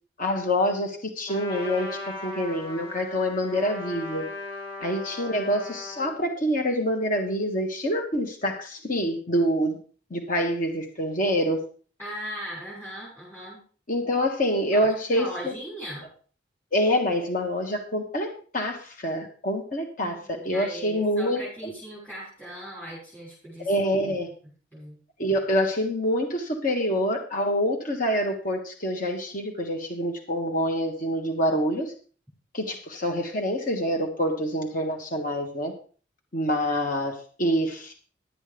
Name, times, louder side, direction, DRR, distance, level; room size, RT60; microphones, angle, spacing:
voice 1, 0.2-4.2 4.8-9.8 10.1-11.6 13.9-15.5 16.7-18.3 18.5-21.7 23.6-24.3 25.2-31.9 32.5-35.7 36.3-37.1 37.4-37.9, equal, 45° left, 2 dB, 1.6 m, -26 dB
Trumpet, 1.3-6.2, left 2 dB, 30° left, 5.4 m, -38 dB
voice 2, 12.0-13.6 14.7-16.1 20.0-23.7 24.0-24.1 24.7-25.0, equal, 10° left, -8 dB, 6.2 m, -39 dB
12.0 x 8.6 x 5.1 m, 0.41 s
head